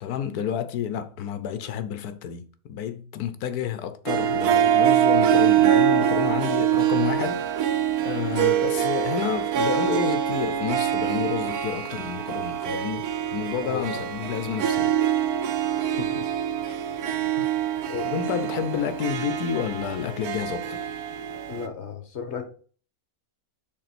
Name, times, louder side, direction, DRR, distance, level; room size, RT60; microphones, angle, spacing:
voice 1, 0.0-14.9 16.7-16.8 17.4-17.5 18.0-20.8, left 9 dB, 90° left, 1.3 m, -30 dB
Harp, 4.1-21.7, right 10 dB, 80° right, 1.3 m, -24 dB
voice 2, 13.6-14.0 15.8-16.3 17.1-17.5 17.9-18.1 21.5-22.5, left 5 dB, 50° left, 1.4 m, -35 dB
6.7 x 4.1 x 5.9 m
omnidirectional pair, 1.6 m